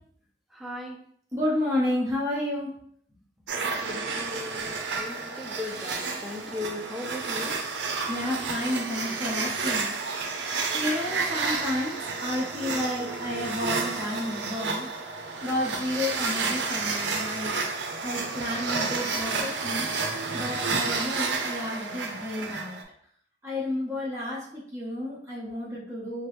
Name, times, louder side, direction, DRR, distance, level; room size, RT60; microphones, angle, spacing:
voice 1, 0.5-1.0 3.8-7.6, left 2 dB, ahead, 0 dB, 0.4 m, -38 dB
voice 2, 1.3-2.7 8.1-9.9 10.7-14.9 15.4-17.5 18.0-19.9 20.3-22.8 23.4-26.3, left 1 dB, 15° right, -6 dB, 1.0 m, -31 dB
sound 1, 3.5-22.8, right 4 dB, 80° right, 0.5 m, -31 dB
4.5 x 2.0 x 3.1 m, 0.64 s
head